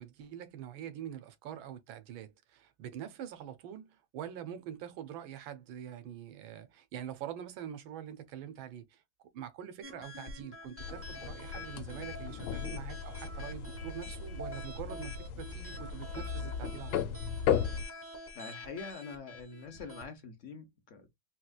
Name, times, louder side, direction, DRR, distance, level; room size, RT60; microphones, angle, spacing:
voice 1, 0.0-9.0 9.3-17.2, right 10 dB, 80° right, 1.5 m, -44 dB
sound 1, 9.8-20.1, left 1 dB, 15° right, 0.4 m, -47 dB
sound 2, 10.8-17.8, left 8 dB, 80° left, 1.4 m, -36 dB
voice 2, 18.3-21.1, left 4 dB, 55° left, 0.8 m, -45 dB
4.3 x 2.3 x 2.3 m
omnidirectional pair, 2.2 m